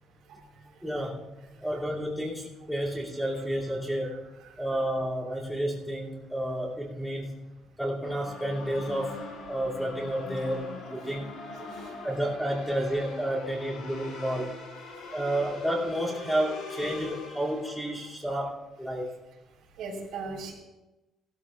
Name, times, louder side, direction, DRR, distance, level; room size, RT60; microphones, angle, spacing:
voice 1, 0.8-1.3 1.6-4.3 4.6-9.2 9.5-11.4 12.0-14.6 15.1-19.1, equal, ahead, -5 dB, 2.8 m, -31 dB
voice 2, 3.4-3.8 4.0-4.8 11.5-11.9 19.8-20.5, right 4 dB, 85° right, -7 dB, 4.6 m, -41 dB
sound 1, 8.0-18.1, left 3 dB, 80° left, 4.4 m, -42 dB
19.5 x 13.0 x 2.5 m, 1.0 s
cardioid pair, 155°, 0 cm